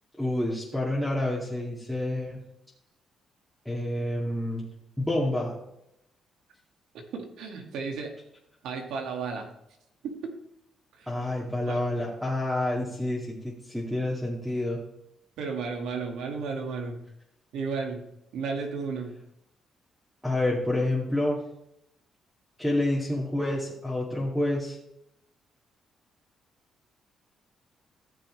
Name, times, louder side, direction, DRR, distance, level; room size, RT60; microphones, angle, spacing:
voice 1, 0.2-2.4 3.7-4.6 5.0-5.6 11.1-14.8 20.2-21.4 22.6-24.8, left 1 dB, ahead, -6 dB, 2.1 m, -28 dB
voice 2, 6.9-8.1 8.6-9.5 10.0-10.3 10.9-11.1 11.7-11.8 15.4-17.0 17.5-18.0 18.3-19.2, right 5 dB, 85° right, 3 dB, 1.8 m, -33 dB
14.5 x 6.6 x 3.2 m, 0.80 s
cardioid pair, 90°, 0 cm